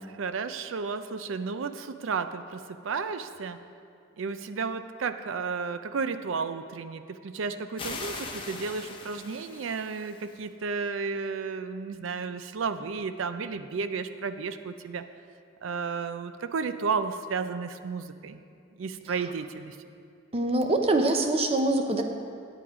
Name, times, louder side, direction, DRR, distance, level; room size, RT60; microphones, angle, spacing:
voice 1, 0.2-3.6 4.2-15.0 15.6-18.4 18.8-19.8, right 5 dB, 85° right, 11 dB, 0.5 m, -33 dB
sound 1, 7.8-10.3, left 3 dB, 25° left, 0.8 m, -40 dB
voice 2, 20.3-22.0, right 2 dB, 30° right, 4 dB, 0.7 m, -24 dB
8.8 x 8.5 x 5.0 m, 2.4 s
head